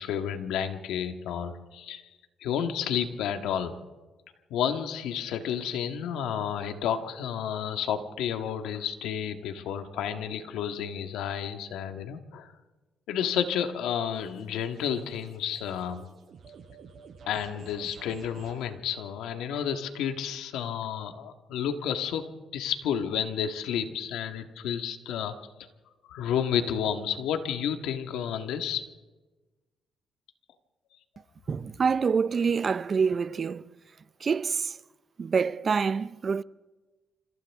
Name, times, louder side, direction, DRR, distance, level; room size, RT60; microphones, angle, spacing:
voice 1, 0.0-2.0 2.4-3.8 4.5-12.5 13.1-16.0 17.3-25.3 26.1-28.8, left 8 dB, 90° left, 1.7 m, -31 dB
sound 1, 13.2-18.7, right 6 dB, 60° right, 7.1 m, -51 dB
voice 2, 31.5-33.6 34.2-34.8 35.2-36.4, right 5 dB, 40° right, 0.5 m, -26 dB
27.5 x 26.5 x 3.6 m
cardioid pair, 90°, 0 cm